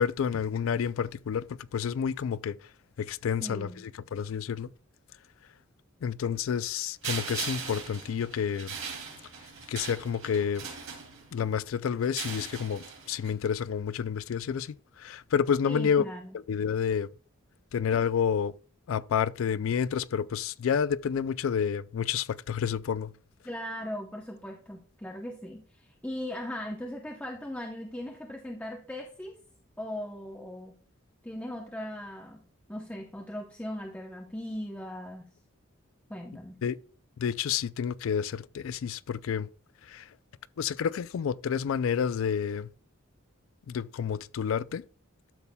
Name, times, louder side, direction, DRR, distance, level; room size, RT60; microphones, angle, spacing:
voice 1, 0.0-2.6 3.0-4.7 6.0-8.7 9.7-10.7 11.3-16.1 16.3-17.1 17.7-18.5 18.9-23.1 36.6-36.8 37.2-39.5 39.9-40.1 40.6-42.7 43.7-44.8, left 7 dB, 75° left, 0.4 m, -29 dB
voice 2, 3.4-3.8 15.6-16.3 23.4-29.3 29.8-30.7 31.2-32.4 32.7-35.3 36.1-36.6, left 1 dB, 5° left, 0.8 m, -38 dB
sound 1, 7.0-11.5 12.0-13.3, right 6 dB, 85° right, 2.6 m, -39 dB
12.5 x 7.0 x 2.2 m
head